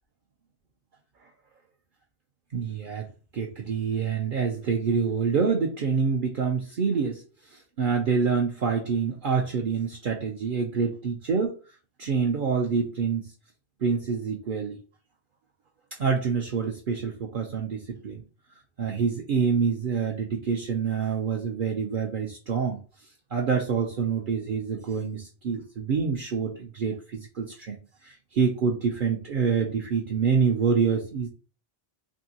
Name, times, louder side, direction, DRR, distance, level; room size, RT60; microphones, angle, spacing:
voice 1, 2.5-3.1 3.3-11.6 12.0-13.3 13.8-14.8 16.0-18.2 18.8-22.8 23.3-31.3, right 6 dB, 60° right, 0 dB, 0.7 m, -26 dB
3.6 x 2.6 x 2.7 m, 0.35 s
omnidirectional pair, 1.1 m